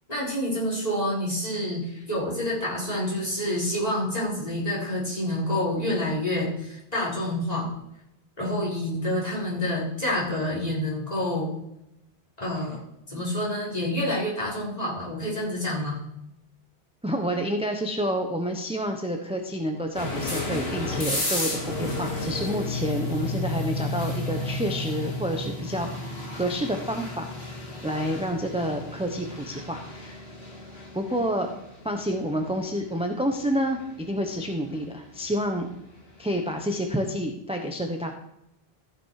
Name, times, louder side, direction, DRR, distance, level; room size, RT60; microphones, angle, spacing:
voice 1, 0.1-7.7 8.4-11.5 12.4-12.8 13.1-16.0, left 1 dB, 40° left, -5 dB, 4.3 m, -28 dB
voice 2, 17.0-27.3 27.8-30.3 30.9-31.5 31.8-35.7 36.2-38.1, equal, 5° right, 3 dB, 0.8 m, -29 dB
sound 1, 19.9-36.7, left 2 dB, 75° left, 2.5 m, -33 dB
14.5 x 6.1 x 4.8 m, 0.85 s
omnidirectional pair, 1.1 m